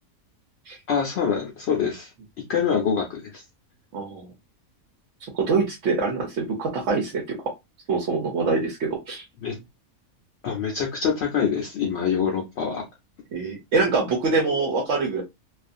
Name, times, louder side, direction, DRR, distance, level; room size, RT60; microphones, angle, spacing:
voice 1, 0.9-2.1 2.5-3.4 9.4-9.6 10.4-12.8, left 7 dB, 60° left, 0 dB, 0.8 m, -25 dB
voice 2, 3.9-4.3 5.3-7.4 7.9-9.3 13.3-15.2, right 4 dB, 65° right, 1 dB, 0.9 m, -24 dB
2.4 x 2.4 x 2.4 m, 0.21 s
omnidirectional pair, 1.5 m